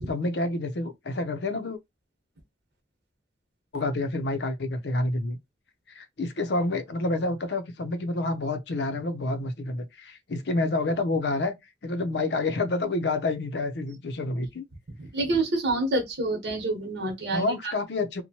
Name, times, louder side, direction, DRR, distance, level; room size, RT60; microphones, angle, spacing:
voice 1, 0.1-1.8 3.7-5.4 5.9-11.5 11.8-14.6 17.3-18.2, left 2 dB, 65° left, 0.5 m, -28 dB
voice 2, 15.0-17.7, right 2 dB, 70° right, 1.0 m, -27 dB
2.9 x 2.1 x 2.8 m
head